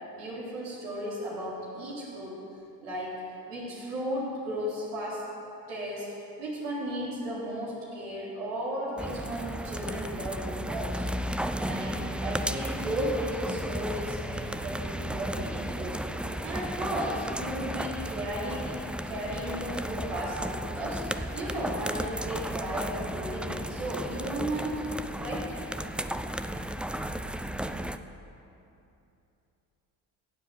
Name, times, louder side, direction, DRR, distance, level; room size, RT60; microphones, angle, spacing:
voice 1, 0.1-2.4 2.8-3.2 3.5-5.3 5.7-11.0 11.4-16.0 16.4-18.8 19.1-24.8 25.2-25.5, equal, 85° right, -6 dB, 3.7 m, -35 dB
sound 1, 9.0-28.0, right 1 dB, ahead, 0.4 m, -34 dB
15.0 x 7.8 x 6.8 m, 2.8 s
hypercardioid pair, 55°, 45 cm